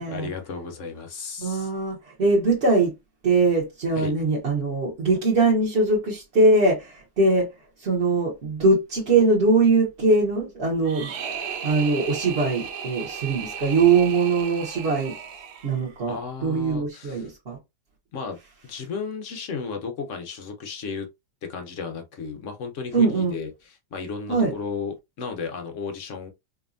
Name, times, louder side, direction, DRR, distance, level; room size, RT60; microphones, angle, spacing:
voice 1, 0.0-1.7 3.9-4.1 16.1-17.3 18.1-18.4 18.6-21.1 21.5-26.3, left 5 dB, 70° left, 0.7 m, -34 dB
voice 2, 1.4-2.9 3.2-7.5 7.8-11.1 11.4-15.1 15.6-16.1 16.4-17.6 22.9-23.4 24.3-24.5, right 3 dB, 40° right, 1.0 m, -21 dB
sound 1, 10.8-16.0, right 7 dB, 65° right, 1.1 m, -35 dB
4.7 x 2.7 x 2.5 m
omnidirectional pair, 2.2 m